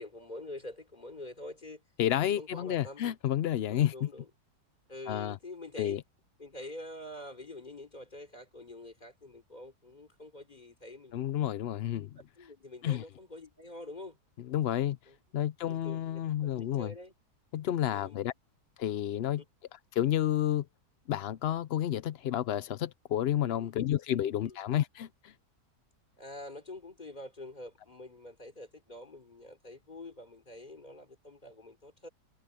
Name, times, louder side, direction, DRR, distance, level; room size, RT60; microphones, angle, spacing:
voice 1, 0.0-1.8 2.4-3.0 3.7-4.3 4.9-6.0 6.4-11.3 12.4-14.2 15.1-15.2 15.6-17.1 17.9-18.2 19.1-19.4 23.4-23.7 24.1-24.6 26.2-32.1, left 2 dB, 25° left, 3.5 m, -46 dB
voice 2, 2.0-4.1 5.1-5.4 5.8-6.0 11.1-12.1 12.8-13.0 14.5-15.0 15.3-16.9 17.5-18.3 18.8-19.4 19.9-20.6 21.1-25.3, left 11 dB, 70° left, 0.5 m, -30 dB
omnidirectional pair, 1.7 m